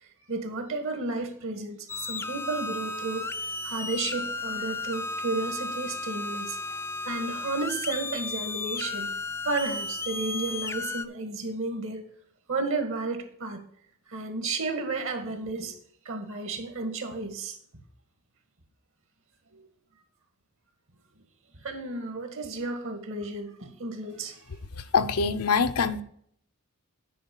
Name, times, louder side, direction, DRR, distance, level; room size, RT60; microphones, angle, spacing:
voice 1, 0.3-3.2 3.6-6.8 7.0-9.1 9.4-12.0 12.5-13.6 14.1-15.8 16.1-17.6 19.5-19.6 21.6-24.5, right 3 dB, 60° right, 6 dB, 1.9 m, -32 dB
sound 1, 1.9-11.0, left 2 dB, 10° left, 0.3 m, -34 dB
voice 2, 24.8-26.0, left 5 dB, 85° left, 10 dB, 0.7 m, -24 dB
9.3 x 4.6 x 7.1 m, 0.64 s
head